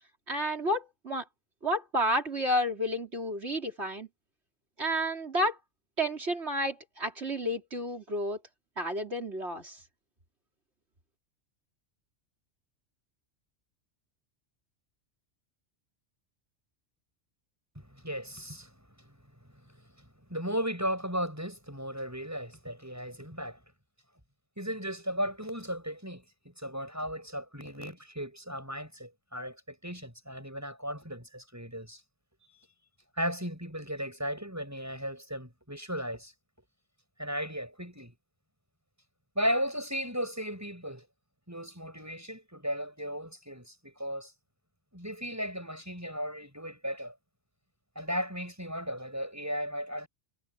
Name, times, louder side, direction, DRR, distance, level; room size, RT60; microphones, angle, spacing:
voice 1, 0.3-1.3 1.6-4.1 4.8-5.6 6.0-8.4 8.8-9.8, equal, 60° right, 4.0 m, -31 dB
voice 2, 17.7-18.7 19.0-19.2 19.6-20.0 20.3-23.6 24.6-32.0 33.2-36.3 37.2-38.1 39.3-41.0 41.5-44.3 44.9-47.1 47.9-50.1, equal, 15° right, 6.7 m, -36 dB
omnidirectional pair, 1.3 m